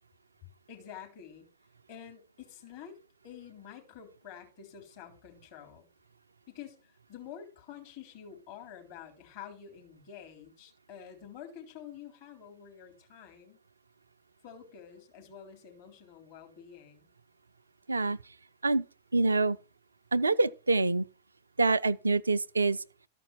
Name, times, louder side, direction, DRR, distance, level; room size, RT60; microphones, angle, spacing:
voice 1, 0.7-1.5 1.9-5.9 6.5-13.6 14.4-17.1, left 8 dB, 50° left, 3.7 m, -48 dB
voice 2, 19.1-19.6 20.1-21.0 21.6-22.8, right 3 dB, 80° right, 0.4 m, -26 dB
13.5 x 5.3 x 6.1 m
figure-of-eight pair, 90°, 0 cm